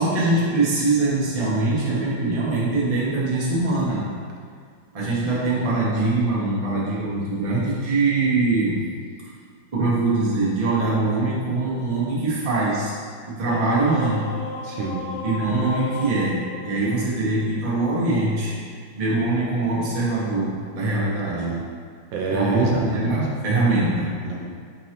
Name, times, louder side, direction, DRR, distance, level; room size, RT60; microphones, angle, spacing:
voice 1, 0.0-4.1 4.9-8.8 9.7-12.9 13.3-14.3 15.2-18.5 18.9-21.5 22.3-24.2, right 2 dB, 35° right, -7 dB, 0.5 m, -22 dB
sound 1, 13.5-17.7, left 3 dB, 70° left, 1.3 m, -34 dB
voice 2, 14.6-15.0 21.3-21.6 22.1-23.2 24.2-24.5, right 3 dB, 85° right, -1 dB, 1.4 m, -28 dB
5.3 x 3.1 x 2.9 m, 2.1 s
omnidirectional pair, 2.1 m